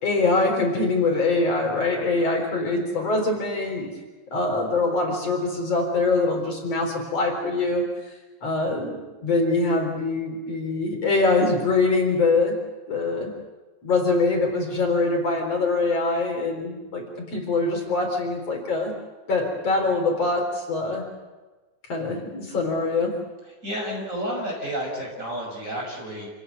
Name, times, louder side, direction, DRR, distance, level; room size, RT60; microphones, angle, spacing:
voice 1, 0.0-3.9 4.3-7.9 8.4-12.6 12.9-13.3 13.8-18.9 19.3-21.1 21.9-23.1, left 3 dB, 55° left, 2 dB, 5.0 m, -23 dB
voice 2, 23.6-26.3, equal, 25° right, 0 dB, 6.6 m, -31 dB
28.0 x 16.0 x 9.5 m, 1.2 s
omnidirectional pair, 3.4 m